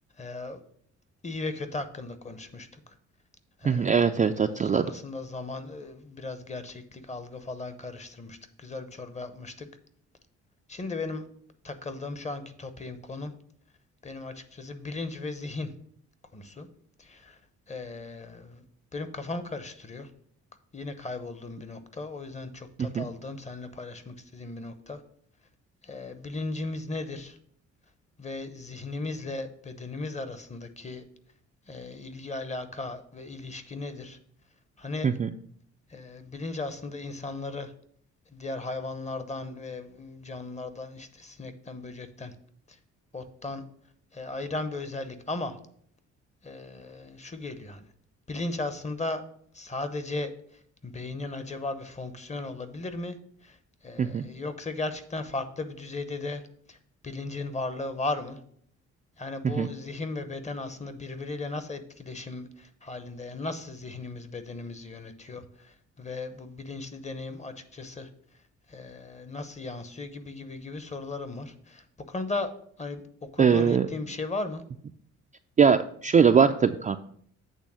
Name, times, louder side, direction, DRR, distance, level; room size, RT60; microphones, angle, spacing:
voice 1, 0.2-0.6 1.2-2.9 3.6-9.7 10.7-11.3 11.6-13.3 14.0-15.7 16.3-16.7 17.0-17.4 17.7-18.6 18.9-20.1 20.7-25.0 25.8-27.4 28.2-31.0 31.7-34.2 34.8-35.1 35.9-37.7 38.3-42.3 42.7-42.8 43.1-43.6 44.1-45.6 46.4-47.9 48.3-49.2 49.5-50.3 50.8-53.2 53.4-53.6 53.8-56.4 56.7-56.8 57.0-58.4 59.2-68.1 68.7-72.5 72.8-73.0 73.3-74.6, left 3 dB, 25° left, 11 dB, 0.8 m, -36 dB
voice 2, 3.6-4.9 22.8-23.1 35.0-35.3 54.0-54.2 59.4-59.7 73.4-73.9 75.6-77.0, right 6 dB, 25° right, 7 dB, 0.3 m, -21 dB
8.3 x 3.4 x 6.2 m, 0.63 s
cardioid pair, 90°, 30 cm